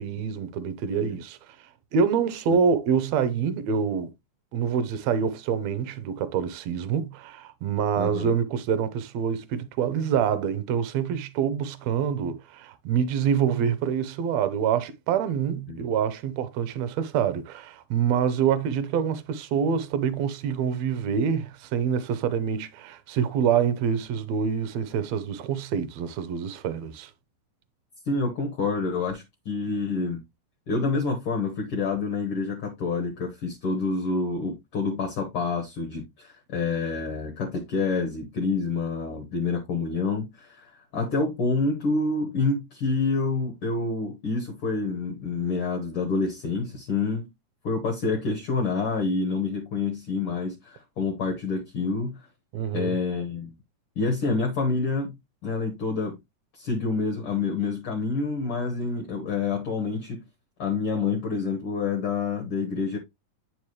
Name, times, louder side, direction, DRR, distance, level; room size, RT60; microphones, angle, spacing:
voice 1, 0.0-1.4 1.9-4.1 4.5-27.1 52.5-53.0, right 7 dB, 70° right, 1.9 m, -26 dB
voice 2, 8.0-8.3 15.7-15.8 28.1-30.2 30.7-47.3 47.6-52.2 52.7-53.5 54.0-55.1 55.4-56.2 56.5-60.2 60.6-63.0, left 4 dB, 55° left, 1.9 m, -27 dB
9.0 x 4.6 x 3.1 m
omnidirectional pair, 3.5 m